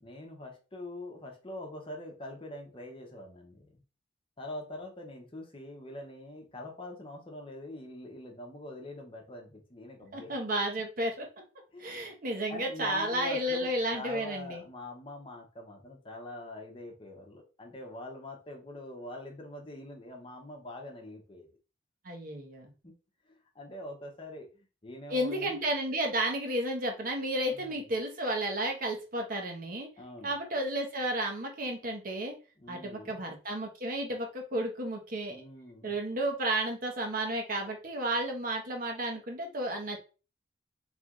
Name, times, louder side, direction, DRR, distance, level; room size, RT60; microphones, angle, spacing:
voice 1, 0.0-3.8 4.4-10.3 11.7-12.0 12.5-21.5 22.8-22.9 23.3-25.6 27.5-27.9 30.0-30.4 32.6-33.2 35.3-36.0, left 1 dB, 30° left, 1 dB, 1.0 m, -44 dB
voice 2, 10.1-11.3 11.8-14.6 22.0-22.7 25.1-29.9 30.2-32.3 32.7-35.4 35.8-40.0, right 1 dB, 50° right, 2 dB, 1.0 m, -32 dB
3.5 x 3.3 x 3.7 m, 0.34 s
head